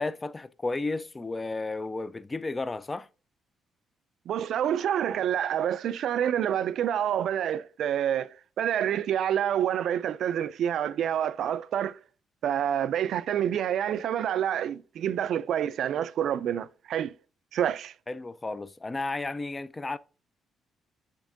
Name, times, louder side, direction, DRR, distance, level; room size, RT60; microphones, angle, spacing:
voice 1, 0.0-3.1 18.1-20.0, left 3 dB, 25° left, 0.4 m, -33 dB
voice 2, 4.3-8.3 8.6-12.0 12.4-17.1 17.5-17.9, right 10 dB, 70° right, 0.3 m, -27 dB
10.0 x 3.6 x 2.6 m
cardioid pair, 90°, 0 cm